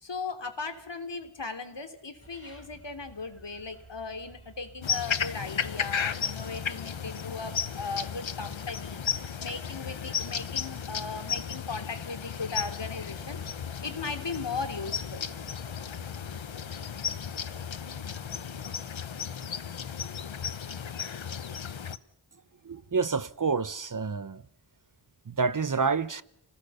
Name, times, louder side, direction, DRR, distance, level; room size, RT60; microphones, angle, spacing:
voice 1, 0.0-15.3, left 4 dB, 65° left, 3.0 m, -37 dB
sound 1, 2.2-11.4, left 2 dB, 30° left, 4.1 m, -58 dB
sound 2, 2.2-18.6, right 5 dB, 70° right, 4.5 m, -55 dB
sound 3, 4.8-22.0, left 7 dB, 85° left, 1.0 m, -34 dB
voice 2, 22.6-24.4 25.3-26.2, right 5 dB, 45° right, 0.8 m, -28 dB
29.0 x 19.0 x 7.0 m
wide cardioid pair, 75°, 45 cm